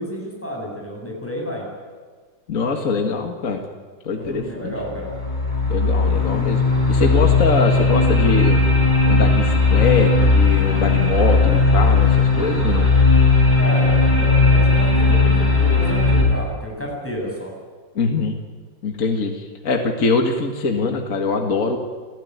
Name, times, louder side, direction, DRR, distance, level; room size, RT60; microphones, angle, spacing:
voice 1, 0.0-1.7 4.1-5.1 13.6-17.5, equal, 5° left, -1 dB, 7.4 m, -30 dB
voice 2, 2.5-3.6 4.0-4.7 5.7-8.7 9.1-12.9 18.0-18.4 18.8-21.8, left 4 dB, 45° left, 3 dB, 2.1 m, -23 dB
sound 1, 4.2-4.3 4.9-16.2, left 3 dB, 20° left, 5.9 m, -16 dB
29.5 x 15.0 x 9.5 m, 1.5 s
omnidirectional pair, 2.0 m